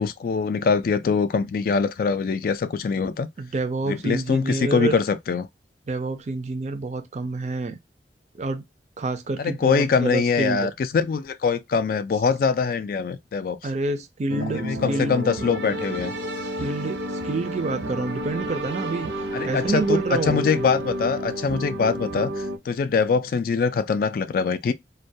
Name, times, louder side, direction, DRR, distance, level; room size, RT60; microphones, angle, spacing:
voice 1, 0.0-3.3 3.9-5.5 9.4-13.6 14.3-16.1 19.3-24.7, left 5 dB, 55° left, 0.3 m, -23 dB
voice 2, 3.4-5.0 5.9-7.8 8.4-8.6 9.0-10.7 13.6-15.3 16.6-19.1 19.5-20.5, right 3 dB, 40° right, 0.4 m, -28 dB
sound 1, 14.3-22.6, equal, 85° right, 0.6 m, -30 dB
2.2 x 2.2 x 2.6 m
head